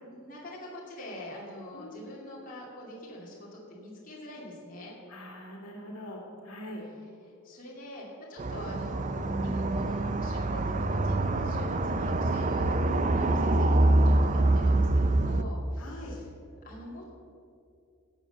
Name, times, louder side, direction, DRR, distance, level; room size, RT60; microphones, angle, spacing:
voice 1, 0.0-4.9 7.2-16.3 16.6-17.1, left 1 dB, 40° left, -4 dB, 2.7 m, -44 dB
voice 2, 1.7-2.1 5.1-6.8 12.9-13.1 15.8-16.1, equal, 85° left, 0 dB, 2.2 m, -43 dB
sound 1, 8.4-15.4, right 2 dB, 35° right, 0.5 m, -25 dB
12.0 x 7.7 x 7.2 m, 2.4 s
head